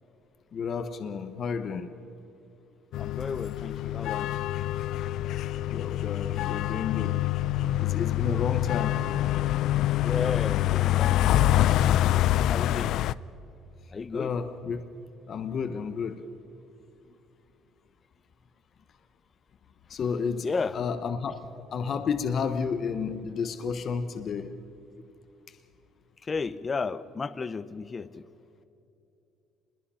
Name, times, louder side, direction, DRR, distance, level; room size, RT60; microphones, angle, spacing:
voice 1, 0.5-1.9 5.2-5.4 5.7-7.3 7.8-9.1 14.1-14.8 15.3-16.3 19.9-20.5 20.7-24.6, left 6 dB, 45° left, 1.0 m, -31 dB
sound 1, 2.9-13.1, left 14 dB, 65° left, 0.5 m, -26 dB
voice 2, 3.0-4.4 10.0-12.0 12.5-12.9 13.9-14.3 20.4-20.9 26.2-28.3, left 4 dB, 25° left, 0.7 m, -33 dB
27.0 x 21.5 x 5.7 m
cardioid pair, 125°, 0 cm